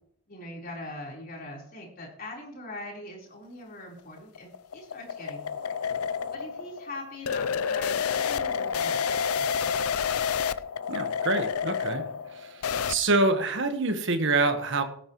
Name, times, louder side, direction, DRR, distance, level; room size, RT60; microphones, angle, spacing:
voice 1, 0.3-5.8 6.3-8.0 8.2-10.2, left 2 dB, 45° left, -2 dB, 4.1 m, -42 dB
sound 1, 4.0-13.0, left 7 dB, 85° left, 0.5 m, -29 dB
voice 2, 10.9-12.0 12.3-12.6 12.9-14.8, right 2 dB, 60° right, 8 dB, 1.4 m, -26 dB
18.0 x 8.9 x 3.1 m, 0.66 s
head